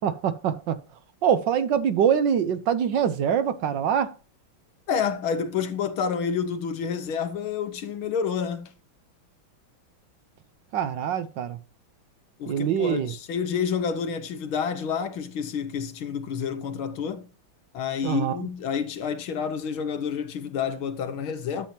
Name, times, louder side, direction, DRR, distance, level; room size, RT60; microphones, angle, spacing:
voice 1, 0.0-0.8 1.2-4.1 10.7-11.6 12.5-13.1 18.0-18.4, right 8 dB, 65° right, 1.3 m, -24 dB
voice 2, 4.9-8.7 12.4-17.3 17.7-21.7, left 7 dB, 75° left, 2.0 m, -29 dB
12.0 x 7.5 x 2.8 m
omnidirectional pair, 2.3 m